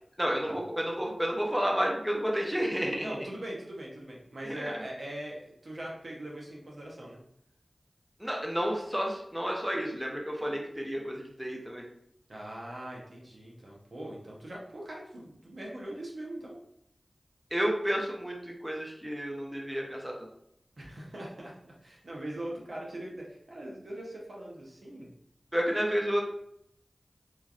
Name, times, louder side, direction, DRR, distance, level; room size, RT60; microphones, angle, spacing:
voice 1, 0.2-3.1 4.4-4.7 8.2-11.8 17.5-20.3 25.5-26.2, equal, 10° right, -1 dB, 0.6 m, -31 dB
voice 2, 3.0-7.2 12.3-16.6 20.8-25.1, right 1 dB, 75° right, -3 dB, 0.8 m, -41 dB
3.1 x 2.5 x 2.4 m, 0.72 s
wide cardioid pair, 45°, 0 cm